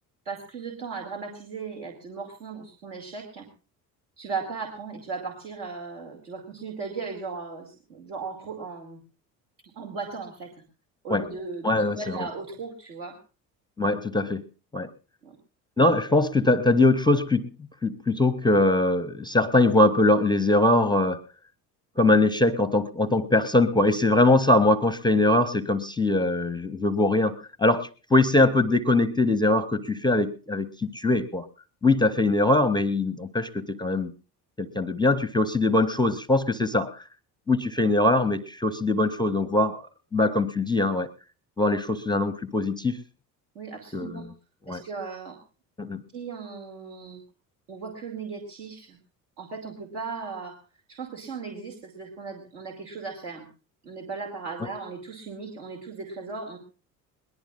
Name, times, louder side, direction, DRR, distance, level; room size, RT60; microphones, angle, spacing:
voice 1, 0.3-3.5 4.2-9.0 9.8-10.5 11.0-13.2 15.2-15.4 43.5-44.3 44.7-45.4 46.1-47.2 47.7-49.0 49.4-50.6 50.9-53.5 53.8-56.6, right 4 dB, 65° right, 1 dB, 2.4 m, -37 dB
voice 2, 11.6-12.2 13.8-14.4 14.7-14.9 15.8-17.5 17.8-21.2 22.0-31.5 31.8-34.1 34.6-37.0 37.5-39.9 40.1-41.1 41.6-43.0 43.9-44.3 44.7-44.8 45.8-46.0, left 2 dB, 10° left, 16 dB, 0.6 m, -22 dB
21.5 x 19.0 x 2.4 m, 0.34 s
figure-of-eight pair, 60°, 49 cm